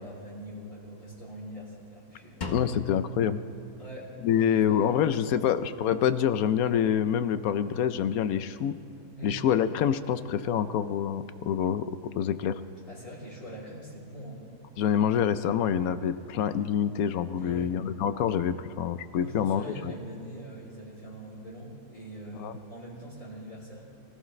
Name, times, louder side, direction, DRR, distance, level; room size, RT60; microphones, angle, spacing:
voice 1, 0.0-2.6 3.8-5.6 9.2-9.4 12.9-14.4 17.4-17.8 19.2-23.8, right 1 dB, 55° left, -4 dB, 4.0 m, -43 dB
Drum, 2.4-4.3, left 2 dB, 35° left, 0.9 m, -38 dB
voice 2, 2.5-3.4 4.2-8.7 9.2-11.9 12.2-12.5 14.8-19.9 22.4-22.5, left 9 dB, 70° left, 12 dB, 1.0 m, -26 dB
23.5 x 14.5 x 3.2 m, 2.6 s
omnidirectional pair, 1.6 m